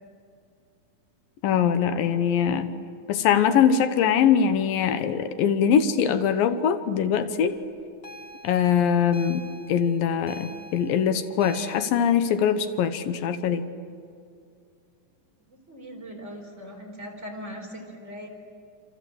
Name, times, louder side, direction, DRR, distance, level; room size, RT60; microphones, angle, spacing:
voice 1, 1.4-2.7 3.1-7.6 8.4-9.4 9.7-13.7, left 8 dB, 80° left, 10 dB, 2.8 m, -22 dB
sound 1, 8.0-11.9, left 1 dB, 30° left, 1.2 m, -44 dB
voice 2, 15.5-18.3, equal, 20° right, 0 dB, 4.5 m, -40 dB
28.0 x 27.0 x 7.9 m, 2.3 s
omnidirectional pair, 4.0 m